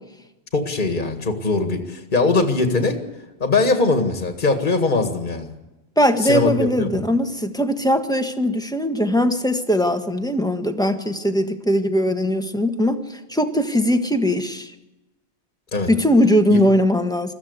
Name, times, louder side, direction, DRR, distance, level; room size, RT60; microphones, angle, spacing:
voice 1, 0.5-3.0 3.4-5.5 6.2-7.0 15.7-15.9 16.5-16.6, left 3 dB, 45° left, 6 dB, 2.1 m, -21 dB
voice 2, 6.0-13.0 13.3-14.7 15.9-17.3, equal, 5° left, 7 dB, 1.5 m, -20 dB
21.5 x 15.0 x 8.1 m, 1.0 s
omnidirectional pair, 1.1 m